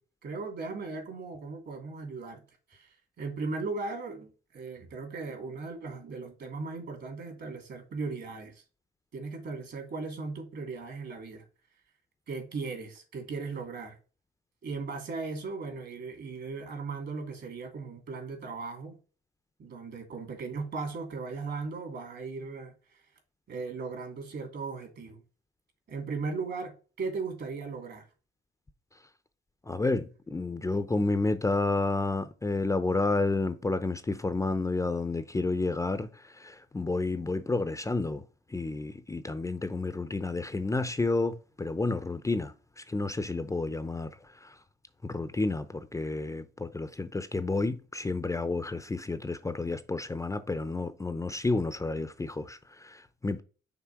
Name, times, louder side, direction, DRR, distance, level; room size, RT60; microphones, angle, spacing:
voice 1, 0.2-2.4 2.7-8.6 9.1-11.4 12.3-14.0 14.6-19.0 19.6-23.0 23.5-25.2 25.9-28.1, right 4 dB, 60° right, 2.7 m, -37 dB
voice 2, 29.6-38.2 38.5-44.6 45.0-53.4, left 3 dB, 15° left, 0.6 m, -30 dB
5.9 x 3.6 x 4.6 m
cardioid pair, 90°, 20 cm